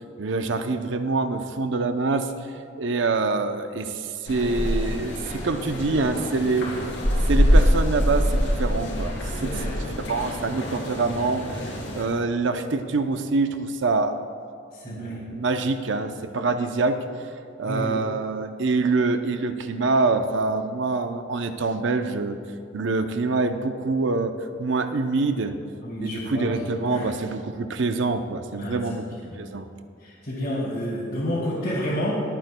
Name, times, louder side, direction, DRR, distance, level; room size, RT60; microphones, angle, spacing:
voice 1, 0.2-2.3 2.8-6.7 7.3-9.5 10.0-14.2 14.9-17.0 17.6-22.4 22.7-24.3 24.6-25.5 26.0-29.1 29.4-29.7, right 3 dB, 70° right, 8 dB, 0.6 m, -25 dB
sound 1, 4.3-12.0, equal, 75° left, 3.0 m, -24 dB
voice 2, 9.4-9.7 14.7-15.2 17.6-17.9 25.8-26.6 26.9-27.0 28.6-28.8 29.1-29.3 30.0-32.2, equal, 55° left, -11 dB, 3.1 m, -29 dB
24.0 x 9.1 x 2.2 m, 2.4 s
head